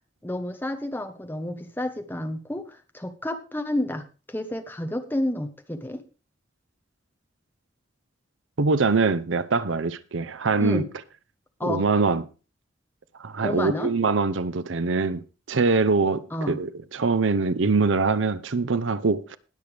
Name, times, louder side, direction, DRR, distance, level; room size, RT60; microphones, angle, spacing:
voice 1, 0.2-6.0 10.6-10.9 11.6-11.9 13.4-13.9 16.3-16.6, left 1 dB, 10° left, 1.1 m, -30 dB
voice 2, 8.6-10.8 11.6-12.2 13.2-15.2 15.5-19.4, right 4 dB, 80° right, 0.7 m, -23 dB
20.0 x 6.7 x 3.4 m
head